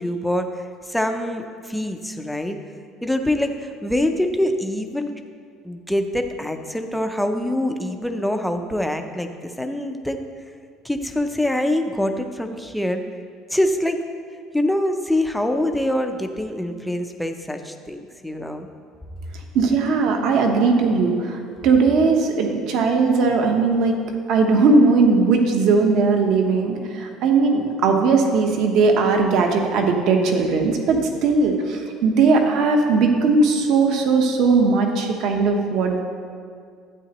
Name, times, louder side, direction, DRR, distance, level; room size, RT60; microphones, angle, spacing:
voice 1, 0.0-2.6 3.0-5.1 5.6-10.2 10.8-13.0 13.5-14.0 14.5-18.7, left 1 dB, ahead, 5 dB, 0.4 m, -24 dB
voice 2, 19.5-23.9 24.3-36.0, right 4 dB, 55° right, 3 dB, 1.0 m, -18 dB
12.0 x 8.7 x 2.9 m, 2.1 s
cardioid pair, 175°, 0 cm